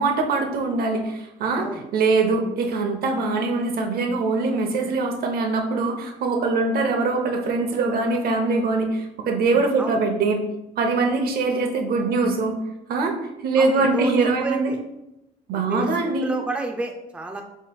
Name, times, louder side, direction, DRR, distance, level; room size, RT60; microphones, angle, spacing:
voice 1, 0.0-1.7 1.9-10.4 10.8-12.6 12.9-13.1 13.4-14.7 15.5-16.3, right 3 dB, 65° right, 4 dB, 0.8 m, -22 dB
voice 2, 13.6-14.8 15.5-15.9 16.2-17.4, right 2 dB, 5° right, 2 dB, 0.5 m, -30 dB
7.4 x 3.1 x 2.3 m, 0.89 s
cardioid pair, 110°, 17 cm